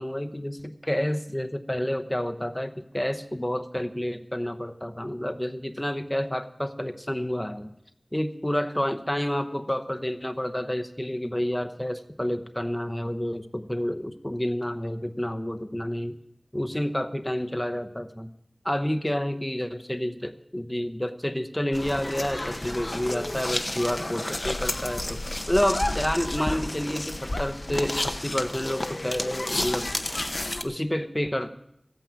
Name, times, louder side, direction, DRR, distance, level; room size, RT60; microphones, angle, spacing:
voice 1, 0.0-7.7 8.1-16.2 16.5-18.3 18.6-25.2 25.5-29.9 30.6-31.5, equal, 20° left, 8 dB, 0.9 m, -29 dB
sound 1, 21.7-30.6, left 1 dB, 50° left, 0.9 m, -31 dB
14.0 x 9.1 x 7.4 m, 0.78 s
wide cardioid pair, 45°, 0 cm